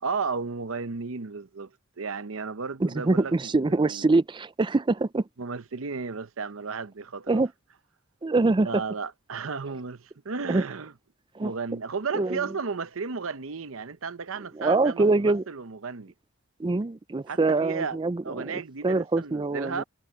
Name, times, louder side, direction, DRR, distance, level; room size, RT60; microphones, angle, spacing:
voice 1, 0.0-1.7 2.0-4.1 5.4-7.4 8.6-10.9 11.4-16.1 17.3-18.0 18.2-19.8, right 5 dB, 75° right, 0.8 m, -34 dB
voice 2, 2.8-5.3 7.3-7.5 8.2-8.8 10.5-10.6 11.3-11.5 12.1-12.4 14.5-15.4 16.6-19.8, right 3 dB, 20° right, 0.4 m, -24 dB
head